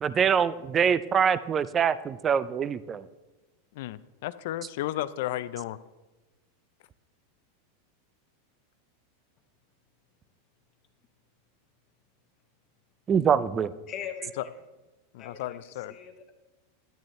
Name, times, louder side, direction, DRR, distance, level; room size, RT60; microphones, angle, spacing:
voice 1, 0.0-3.1 13.1-13.7, right 7 dB, 25° right, 16 dB, 0.3 m, -24 dB
voice 2, 3.7-5.8 14.4-14.5 15.1-15.9, left 14 dB, 65° left, 15 dB, 0.4 m, -33 dB
voice 3, 13.9-14.5 15.2-15.6 15.9-16.3, left 8 dB, 35° left, 6 dB, 1.0 m, -40 dB
10.5 x 9.0 x 3.2 m, 1.1 s
supercardioid pair, 130°, 0 cm